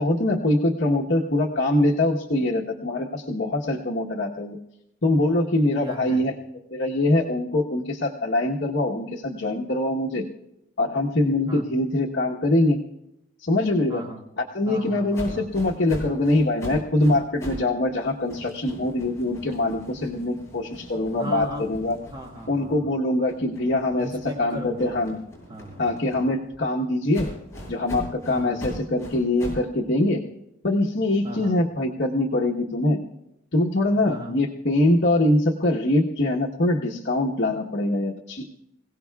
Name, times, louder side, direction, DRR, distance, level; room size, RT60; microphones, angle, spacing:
voice 1, 0.0-4.6 5.0-6.3 6.7-10.2 10.8-12.8 13.4-14.0 14.5-22.0 22.5-24.1 24.4-25.2 25.8-27.3 27.7-30.2 30.6-33.0 33.5-38.5, left 1 dB, 60° left, -2 dB, 1.2 m, -23 dB
voice 2, 5.8-6.2 11.5-11.7 13.9-14.3 14.7-15.5 21.2-21.7 22.0-23.0 24.0-25.1 25.5-25.9 28.3-28.6 31.2-31.6 34.1-34.4, equal, 25° right, -1 dB, 1.9 m, -37 dB
sound 1, 15.1-17.7 18.0-22.8 23.2-26.6 27.1-29.7, equal, 15° left, 7.7 m, -40 dB
26.5 x 17.0 x 2.4 m, 0.85 s
head